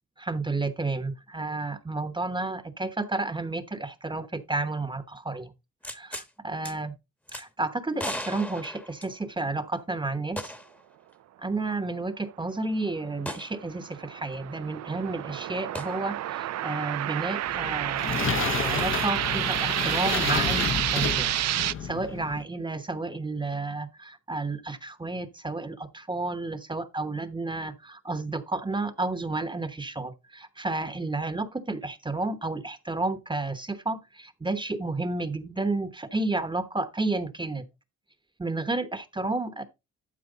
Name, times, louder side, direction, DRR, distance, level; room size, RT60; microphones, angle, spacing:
voice 1, 0.2-5.5 5.9-6.9 7.3-10.5 11.4-21.3 21.8-37.6 38.4-39.6, right 2 dB, 15° right, 1.0 m, -31 dB
sound 1, 5.8-6.3 6.6-6.7 7.3-7.4 8.0-9.5 10.4-10.8 11.1-11.2 13.2-13.5 15.7-15.9 18.8-18.9, left 1 dB, 5° left, 1.1 m, -37 dB
sound 2, 13.4-21.7, right 13 dB, 60° right, 0.5 m, -29 dB
sound 3, 17.5-22.4, left 7 dB, 45° left, 0.8 m, -31 dB
12.0 x 4.5 x 3.9 m
cardioid pair, 95°, 30 cm